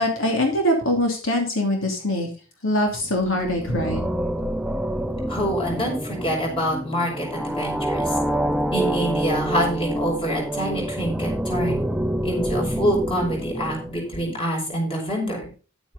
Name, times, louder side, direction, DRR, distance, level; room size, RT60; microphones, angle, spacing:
voice 1, 0.0-2.3 2.6-4.1, left 1 dB, 75° left, 2 dB, 3.0 m, -23 dB
sound 1, 3.1-14.3, right 1 dB, 5° right, 0.6 m, -27 dB
voice 2, 5.3-8.2 8.7-11.8 12.2-15.5, equal, 25° left, 0 dB, 5.4 m, -26 dB
11.0 x 9.1 x 4.1 m, 0.35 s
head